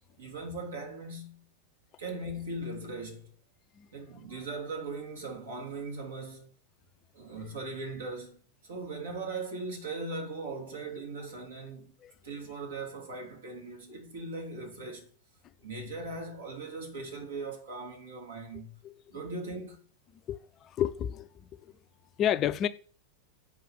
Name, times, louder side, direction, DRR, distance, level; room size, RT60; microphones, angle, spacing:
voice 1, 0.2-1.4 2.0-3.3 3.9-6.5 7.1-11.9 12.2-15.1 15.6-18.8 19.1-19.8, right 3 dB, 65° right, 2.7 m, -39 dB
voice 2, 20.3-21.7 22.2-22.7, left 10 dB, 30° left, 0.5 m, -31 dB
7.5 x 4.9 x 7.1 m
figure-of-eight pair, 90°, 0 cm